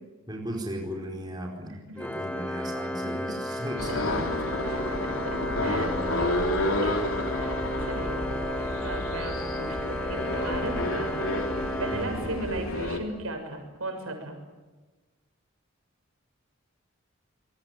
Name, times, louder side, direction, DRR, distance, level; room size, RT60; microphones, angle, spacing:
voice 1, 0.3-4.2 5.6-6.3 11.9-12.2, equal, 20° right, 0 dB, 4.7 m, -36 dB
Organ, 2.0-12.8, left 1 dB, 5° left, 1.7 m, -33 dB
voice 2, 3.3-4.3 4.6-7.0 7.3-8.2 8.5-14.4, right 2 dB, 90° right, 4 dB, 6.8 m, -37 dB
sound 1, 3.8-13.0, left 1 dB, 85° left, 3.0 m, -30 dB
Musical instrument, 7.9-13.1, equal, 40° left, 7.5 m, -45 dB
26.5 x 21.5 x 9.3 m, 1.3 s
head